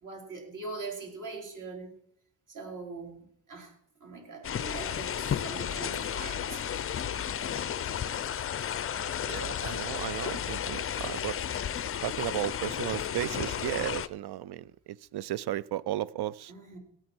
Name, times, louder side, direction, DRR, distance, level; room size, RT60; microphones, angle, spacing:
voice 1, 0.0-2.0 2.5-3.7 4.0-5.1 5.4-6.6 9.6-9.8 16.5-16.8, right 3 dB, 45° right, 4.3 m, -42 dB
sound 1, 4.4-14.1, left 9 dB, 30° left, 0.5 m, -33 dB
voice 2, 9.2-11.4 12.0-16.5, right 13 dB, 60° right, 0.6 m, -34 dB
17.0 x 9.3 x 4.5 m
cardioid pair, 115°, 43 cm